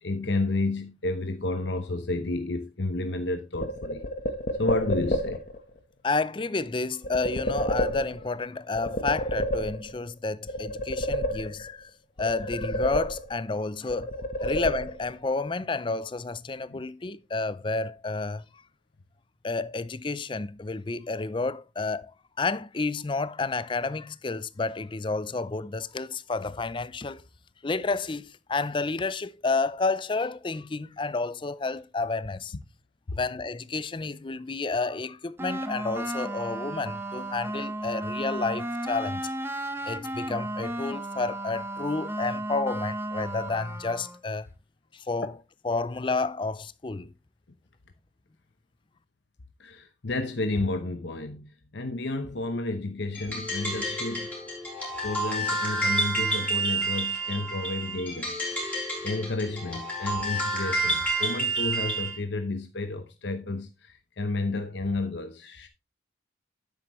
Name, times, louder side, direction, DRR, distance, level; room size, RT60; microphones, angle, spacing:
voice 1, 0.0-4.0 4.6-5.4 14.4-14.5 16.7-16.8 49.6-54.3 55.0-58.4 59.0-65.7, left 2 dB, 65° left, 0.8 m, -31 dB
sound 1, 3.6-5.6 7.0-8.4 8.8-10.1 10.5-11.8 12.2-13.6 13.9-15.3, equal, 40° left, 1.1 m, -30 dB
voice 2, 6.0-11.9 12.2-14.1 14.4-18.4 19.4-27.2 27.6-32.5 33.1-44.5 44.9-45.4 45.6-47.1, left 3 dB, 25° left, 0.4 m, -30 dB
sound 2, 35.4-44.2, right 1 dB, 10° right, 0.7 m, -34 dB
sound 3, 53.1-62.2, right 2 dB, 10° left, 3.6 m, -29 dB
10.0 x 7.9 x 3.1 m
head